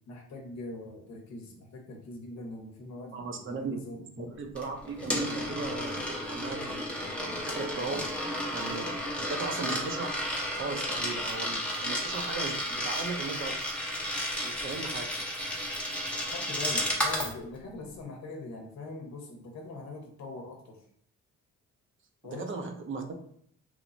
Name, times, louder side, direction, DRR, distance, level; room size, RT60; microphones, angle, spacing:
voice 1, 0.1-4.4 16.3-20.8 22.2-22.6, left 2 dB, 65° left, 1 dB, 0.7 m, -42 dB
voice 2, 3.1-8.1 8.5-10.3 10.5-13.6 14.4-15.1 22.2-23.1, right 4 dB, 45° right, 5 dB, 0.5 m, -37 dB
Coin (dropping), 4.6-17.3, equal, 5° left, 0.6 m, -33 dB
3.0 x 2.0 x 2.5 m, 0.65 s
cardioid pair, 90°, 30 cm